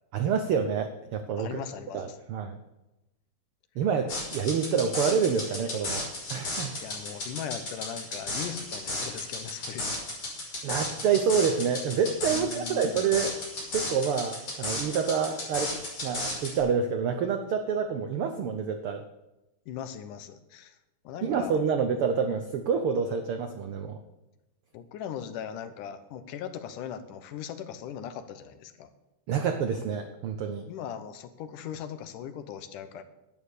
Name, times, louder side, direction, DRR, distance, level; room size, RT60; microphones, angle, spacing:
voice 1, 0.1-1.6 1.9-2.6 3.8-6.0 6.3-6.7 10.6-13.4 13.7-19.0 21.2-24.0 29.3-30.7, right 6 dB, 80° right, 7 dB, 1.2 m, -27 dB
voice 2, 1.4-2.2 6.8-10.0 12.3-13.0 19.7-20.8 21.0-21.5 24.7-28.9 30.7-33.0, left 8 dB, 85° left, 10 dB, 2.5 m, -39 dB
sound 1, 4.1-16.6, left 2 dB, 45° left, 5.9 m, -34 dB
11.5 x 9.4 x 6.7 m, 0.96 s
omnidirectional pair, 3.6 m